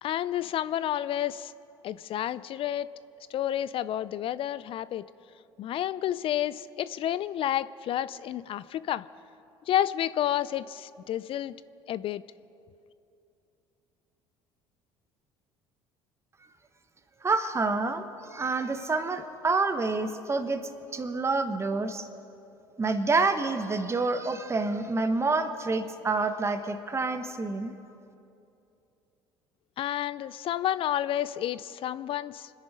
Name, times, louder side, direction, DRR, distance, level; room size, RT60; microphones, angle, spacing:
voice 1, 0.0-1.5 1.8-2.9 3.3-5.1 5.6-9.0 9.7-11.5 11.9-12.2 29.8-32.5, left 11 dB, 50° left, 17 dB, 0.4 m, -30 dB
voice 2, 17.2-22.1 22.8-27.7, right 3 dB, 25° right, 8 dB, 1.2 m, -28 dB
25.5 x 10.5 x 5.0 m, 2.7 s
hypercardioid pair, 70°, 12 cm